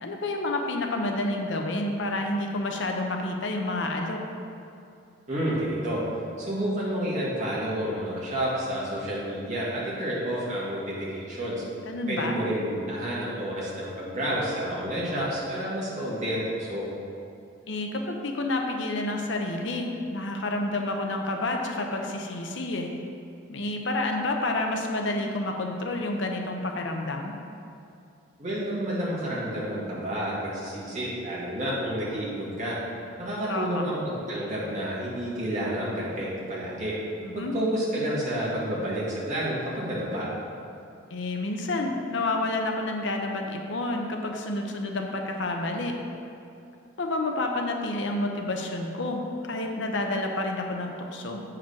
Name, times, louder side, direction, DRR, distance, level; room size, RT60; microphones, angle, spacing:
voice 1, 0.0-4.2 11.9-12.4 17.7-22.9 23.5-27.3 33.5-33.8 37.2-37.6 41.1-45.9 47.0-51.4, left 2 dB, 65° left, 2 dB, 0.7 m, -29 dB
voice 2, 5.3-6.0 6.4-11.6 12.1-16.9 28.4-32.8 33.2-36.9 37.3-40.3, equal, 35° right, -7 dB, 2.0 m, -30 dB
7.8 x 5.0 x 5.8 m, 2.6 s
head